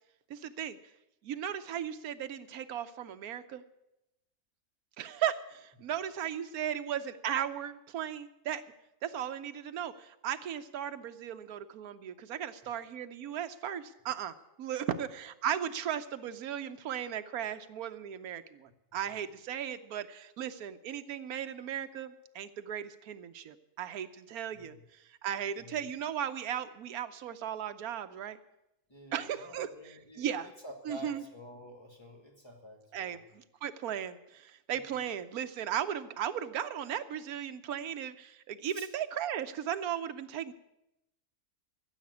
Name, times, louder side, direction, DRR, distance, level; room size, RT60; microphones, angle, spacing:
voice 1, 0.3-0.8 1.2-3.6 5.0-8.6 9.0-28.4 29.1-30.5 30.9-31.2 32.9-40.5, right 9 dB, 85° right, 10 dB, 1.3 m, -36 dB
voice 2, 24.5-24.8 25.6-25.9 28.9-33.2 34.7-35.0 38.7-38.9, equal, 20° left, 1 dB, 2.2 m, -49 dB
14.5 x 7.4 x 9.5 m, 0.88 s
omnidirectional pair, 1.5 m